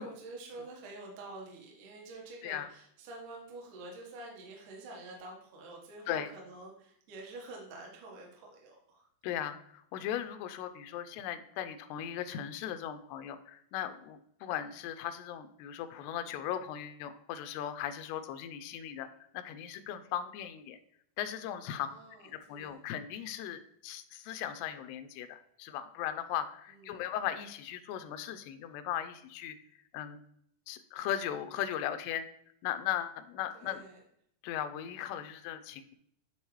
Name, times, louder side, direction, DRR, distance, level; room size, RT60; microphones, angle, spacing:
voice 1, 0.0-9.1 21.8-22.8 26.7-27.1 33.5-34.0, right 2 dB, 60° right, -1 dB, 2.4 m, -48 dB
voice 2, 9.2-19.1 19.3-20.8 21.2-21.9 22.2-29.6 29.9-30.2 30.7-32.3 32.6-33.8 34.4-36.0, left 10 dB, 85° left, 10 dB, 2.6 m, -38 dB
10.0 x 3.6 x 3.1 m, 0.70 s
omnidirectional pair, 4.6 m